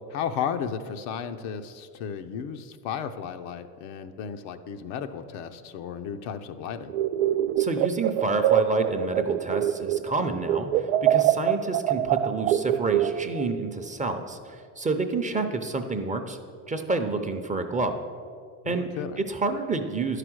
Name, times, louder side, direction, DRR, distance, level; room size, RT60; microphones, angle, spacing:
voice 1, 0.1-6.9 18.6-19.2, left 7 dB, 70° left, 7 dB, 0.8 m, -34 dB
sound 1, 6.9-10.2 10.4-13.5, right 12 dB, 75° right, 0.5 m, -24 dB
voice 2, 7.6-16.4 16.7-18.0 18.7-18.9 19.2-20.2, right 3 dB, 15° right, 6 dB, 0.6 m, -29 dB
11.0 x 5.0 x 6.2 m, 2.2 s
supercardioid pair, 95°, 45 cm